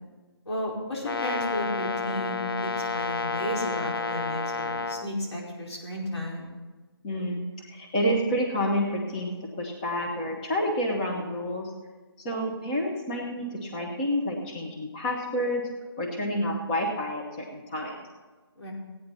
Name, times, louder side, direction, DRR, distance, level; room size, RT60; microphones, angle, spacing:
voice 1, 0.4-6.5 18.5-18.7, left 1 dB, 90° left, -3 dB, 5.0 m, -33 dB
Brass instrument, 1.0-5.1, left 4 dB, 60° left, 0.8 m, -30 dB
voice 2, 7.0-11.7 12.2-15.7 16.0-18.0, equal, 15° left, -1 dB, 1.1 m, -29 dB
16.0 x 9.5 x 4.2 m, 1.3 s
hypercardioid pair, 170°, 14 cm